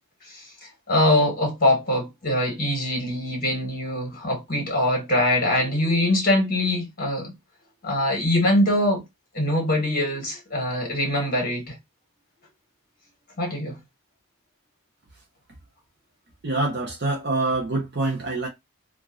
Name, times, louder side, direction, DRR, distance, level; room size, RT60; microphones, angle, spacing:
voice 1, 0.2-7.3 7.8-9.0 9.3-11.8 13.4-13.8, left 1 dB, 40° left, 1.5 m, -23 dB
voice 2, 16.4-18.5, right 2 dB, 50° right, 0.7 m, -25 dB
2.9 x 2.5 x 2.5 m
head